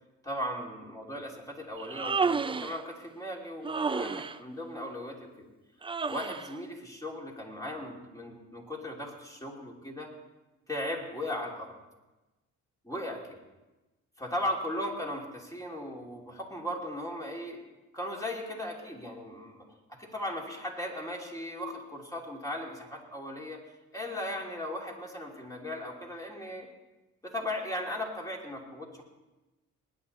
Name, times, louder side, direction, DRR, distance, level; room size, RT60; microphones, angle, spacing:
voice 1, 0.2-5.4 6.1-10.1 10.7-11.7 12.8-13.4 14.2-17.6 17.9-19.6 20.0-23.6 23.9-26.7 27.2-29.0, left 1 dB, 10° left, -1 dB, 3.0 m, -37 dB
Human voice, 1.8-2.8 3.6-4.4 5.8-6.5, right 5 dB, 15° right, 0.4 m, -31 dB
20.0 x 9.7 x 4.2 m, 1.1 s
cardioid pair, 90°, 30 cm